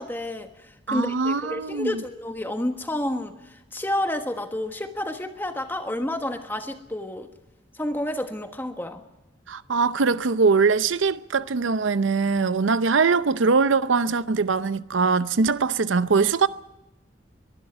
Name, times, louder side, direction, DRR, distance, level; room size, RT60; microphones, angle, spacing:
voice 1, 0.0-7.3 7.7-9.0, left 1 dB, 10° left, 1.4 m, -30 dB
voice 2, 0.9-2.0 9.5-16.5, right 4 dB, 85° right, 0.7 m, -22 dB
23.0 x 11.5 x 9.9 m
head